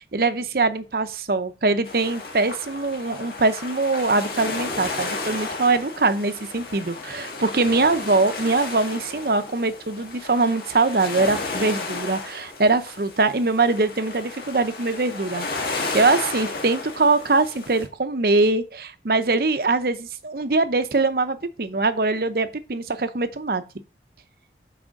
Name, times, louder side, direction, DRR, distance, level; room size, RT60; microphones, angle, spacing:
voice 1, 0.1-23.6, right 3 dB, 55° right, 0.7 m, -22 dB
sound 1, 1.8-17.9, left 3 dB, 55° left, 1.8 m, -33 dB
6.2 x 4.9 x 6.3 m
head